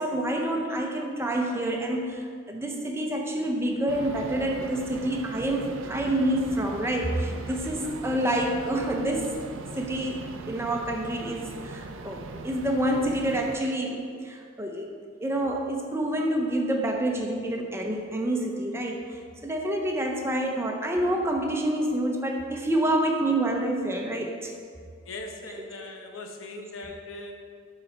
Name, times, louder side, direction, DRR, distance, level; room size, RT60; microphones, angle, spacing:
voice 1, 0.0-9.3 9.8-14.9 15.2-24.5, right 1 dB, 10° right, 1 dB, 0.6 m, -28 dB
sound 1, 3.9-13.6, right 3 dB, 75° right, 0.5 m, -40 dB
voice 2, 25.1-27.4, left 2 dB, 80° left, 3 dB, 0.9 m, -40 dB
11.5 x 4.0 x 4.5 m, 2.1 s
head